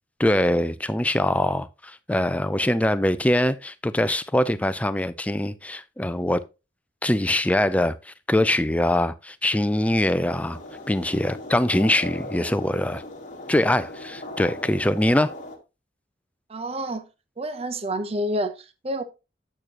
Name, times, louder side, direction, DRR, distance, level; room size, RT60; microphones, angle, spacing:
voice 1, 0.2-6.4 7.0-10.6 10.9-13.0 13.5-15.3, left 1 dB, 5° left, 0.4 m, -23 dB
sound 1, 10.2-15.6, left 1 dB, 40° left, 1.6 m, -38 dB
voice 2, 16.5-17.0 17.4-19.0, right 1 dB, 30° right, 0.6 m, -28 dB
8.8 x 6.3 x 2.9 m
head